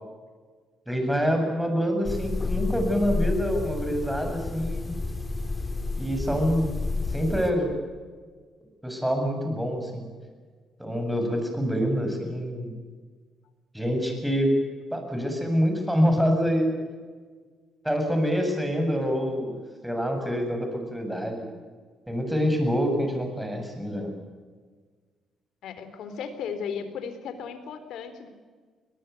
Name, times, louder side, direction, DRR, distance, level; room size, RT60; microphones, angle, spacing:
voice 1, 0.9-4.9 6.0-6.7 7.1-7.8 8.8-10.1 10.8-12.7 13.7-14.6 14.9-16.7 17.8-21.6 22.1-24.2, equal, 5° right, 4 dB, 7.7 m, -26 dB
sound 1, 2.0-7.5, left 3 dB, 20° left, 4.2 m, -30 dB
voice 2, 25.6-28.3, left 6 dB, 80° left, 10 dB, 3.8 m, -35 dB
22.5 x 20.5 x 9.5 m, 1.5 s
cardioid pair, 90°, 0 cm